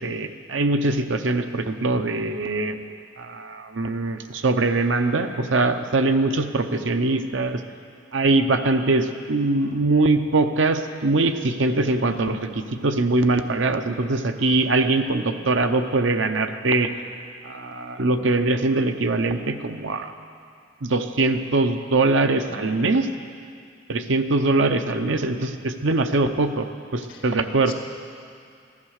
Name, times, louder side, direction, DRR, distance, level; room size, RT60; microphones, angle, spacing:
voice 1, 0.0-2.8 3.2-7.6 8.1-12.4 12.8-16.9 17.4-20.1 20.8-23.1 23.9-26.7 26.9-27.7, right 2 dB, 75° right, 8 dB, 0.8 m, -22 dB
voice 2, 22.5-22.9 27.1-27.7, left 4 dB, 75° left, 2 dB, 1.8 m, -43 dB
14.5 x 11.0 x 6.5 m, 2.4 s
head